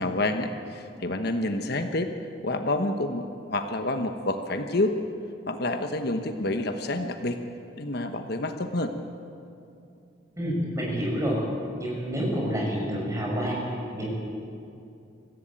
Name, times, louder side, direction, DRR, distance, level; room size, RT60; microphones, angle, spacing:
voice 1, 0.0-2.1 2.4-5.0 5.5-7.4 7.8-8.9, left 2 dB, 55° left, 6 dB, 1.2 m, -28 dB
voice 2, 10.4-11.4 11.8-14.1, equal, 15° right, -3 dB, 6.7 m, -28 dB
24.0 x 15.0 x 9.1 m, 2.6 s
head